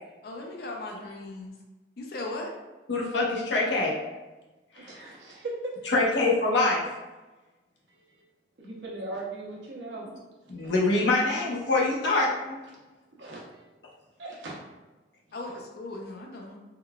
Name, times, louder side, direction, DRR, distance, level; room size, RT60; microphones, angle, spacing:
voice 1, 0.2-1.5 2.0-2.5 15.3-16.6, left 2 dB, 60° left, 1 dB, 0.5 m, -37 dB
voice 2, 2.9-3.9 5.9-6.8 10.5-12.5, left 2 dB, 90° left, -4 dB, 0.8 m, -24 dB
voice 3, 4.7-5.9 7.9-8.2 8.6-10.1 10.6-10.7 11.1-11.2 13.2-13.6 14.2-14.5, right 2 dB, 85° right, -3 dB, 0.8 m, -39 dB
3.7 x 2.3 x 2.2 m, 1.1 s
head